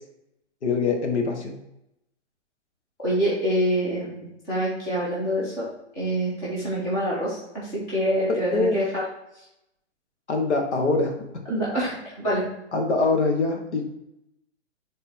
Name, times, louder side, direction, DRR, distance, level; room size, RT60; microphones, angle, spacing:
voice 1, 0.6-1.6 8.5-8.8 10.3-11.3 12.7-13.9, left 3 dB, 70° left, 3 dB, 1.5 m, -24 dB
voice 2, 3.0-5.7 5.9-9.0 11.5-12.5, equal, 10° left, -7 dB, 1.0 m, -26 dB
5.5 x 3.9 x 4.3 m, 0.84 s
hypercardioid pair, 180°, 36 cm